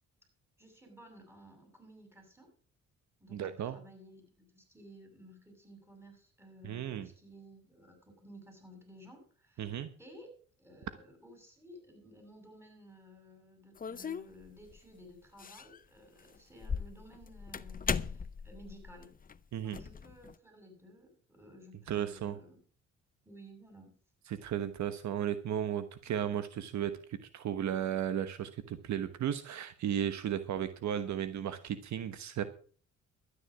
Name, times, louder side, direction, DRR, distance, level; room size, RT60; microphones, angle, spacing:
voice 1, 0.6-2.5 3.2-10.3 10.6-19.1 19.6-22.6 23.2-23.9, equal, 10° right, 4 dB, 7.0 m, -55 dB
voice 2, 3.3-3.8 6.6-7.1 9.6-9.9 19.5-19.8 21.9-22.3 24.3-32.4, right 10 dB, 65° right, 11 dB, 1.2 m, -35 dB
sound 1, 13.8-14.8 15.4-15.8 16.2-20.3, left 6 dB, 30° left, 0.7 m, -38 dB
12.5 x 9.9 x 6.1 m, 0.42 s
cardioid pair, 90°, 30 cm